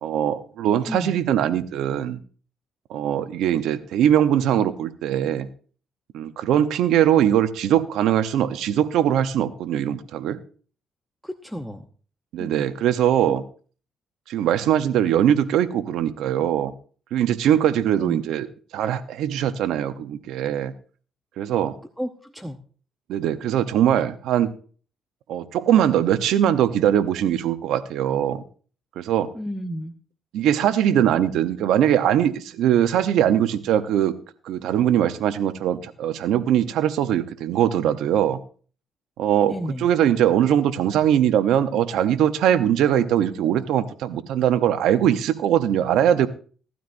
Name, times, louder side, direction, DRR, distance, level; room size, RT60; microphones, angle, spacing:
voice 1, 0.0-2.2 2.9-5.5 6.1-10.4 12.3-13.4 14.3-16.7 17.1-18.5 18.7-20.7 21.4-21.7 23.1-24.5 25.3-28.4 29.0-29.3 30.3-34.2 34.4-38.4 39.2-46.3, right 10 dB, 85° right, 12 dB, 0.8 m, -21 dB
voice 2, 11.2-11.8 12.4-12.6 13.3-13.4 17.9-18.2 22.0-22.6 29.3-29.9 39.4-39.8, equal, ahead, 7 dB, 0.8 m, -32 dB
17.0 x 12.5 x 2.6 m, 0.41 s
cardioid pair, 90°, 0 cm